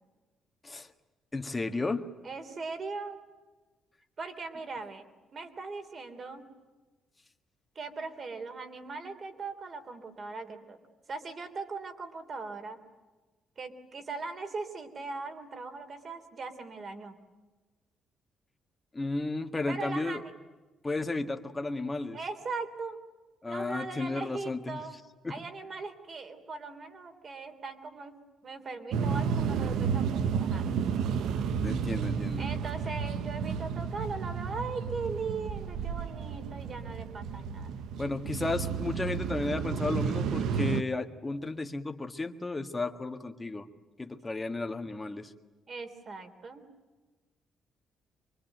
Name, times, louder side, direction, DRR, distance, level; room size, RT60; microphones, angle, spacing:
voice 1, 1.3-2.1 18.9-20.2 20.8-22.2 23.4-24.8 25.2-25.3 31.6-32.5 38.0-43.7 44.0-45.3, left 3 dB, 15° left, 6 dB, 1.7 m, -33 dB
voice 2, 2.2-3.2 4.2-5.0 5.3-6.5 7.7-10.8 11.1-12.8 13.6-17.2 19.7-20.3 22.1-23.0 23.5-25.0 25.3-28.2 28.4-30.6 32.4-37.8 45.7-46.7, right 4 dB, 35° right, 8 dB, 3.2 m, -39 dB
sound 1, 28.9-40.8, right 6 dB, 75° right, 0.9 m, -32 dB
25.5 x 23.5 x 9.2 m, 1.2 s
cardioid pair, 145°, 0 cm